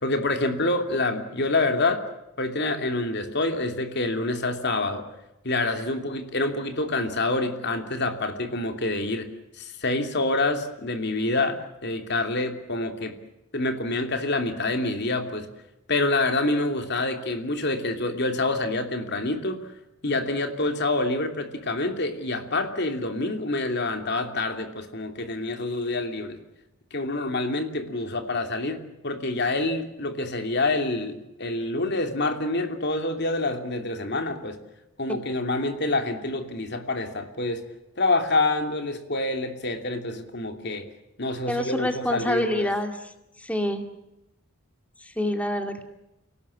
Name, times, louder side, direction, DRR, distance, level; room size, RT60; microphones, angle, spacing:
voice 1, 0.0-2.0 2.4-5.0 5.4-9.3 9.6-13.2 13.5-15.5 15.9-19.7 20.0-26.4 26.9-34.6 35.0-37.6 38.0-40.9 41.2-42.7, left 2 dB, 55° left, 6 dB, 2.9 m, -27 dB
voice 2, 41.5-43.0 43.4-43.8 45.0-45.8, left 1 dB, 5° left, 6 dB, 2.3 m, -27 dB
28.5 x 18.5 x 8.6 m, 0.91 s
head